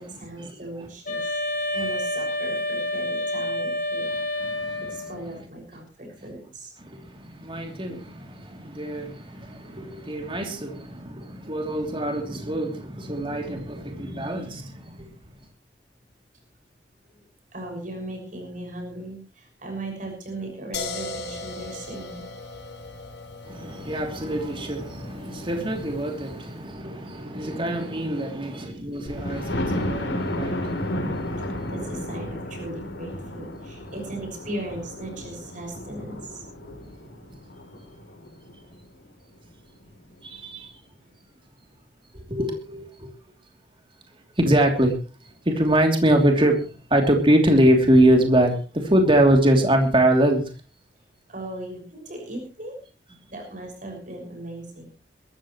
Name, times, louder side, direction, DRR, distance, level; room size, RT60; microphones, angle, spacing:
voice 1, 0.0-1.4 1.7-4.1 4.8-6.7 17.1-22.3 31.7-36.4 51.3-52.8 53.3-54.9, right 1 dB, 45° right, 6.3 m, -38 dB
Wind instrument woodwind instrument, 1.1-5.3, left 1 dB, 50° left, 5.5 m, -28 dB
voice 2, 4.1-5.0 6.8-15.1 23.4-31.7 36.6-37.2 40.2-40.7 42.1-43.1 44.4-44.9 45.4-50.4, right 1 dB, 30° right, 3.1 m, -24 dB
sound 1, 20.7-26.5, left 3 dB, 70° left, 3.3 m, -38 dB
Thunder, 29.1-38.8 39.3-39.4 39.9-40.0 40.2-40.3, left 1 dB, 85° left, 3.5 m, -32 dB
22.5 x 14.0 x 3.2 m
head